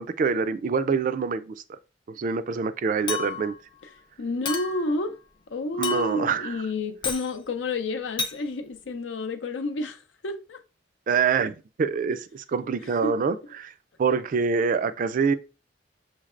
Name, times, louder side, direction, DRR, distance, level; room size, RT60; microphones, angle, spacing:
voice 1, 0.0-1.8 2.1-3.5 5.8-6.5 11.1-13.7 14.0-15.3, right 5 dB, 45° right, 0.3 m, -25 dB
Chink clink, 3.1-3.6 4.4-4.9 5.8-6.3 7.0-7.3 8.2-8.4, left 6 dB, 25° left, 0.4 m, -31 dB
voice 2, 4.2-5.2 5.5-10.6 12.8-13.1, left 2 dB, 90° left, 0.6 m, -30 dB
6.3 x 3.2 x 2.4 m
head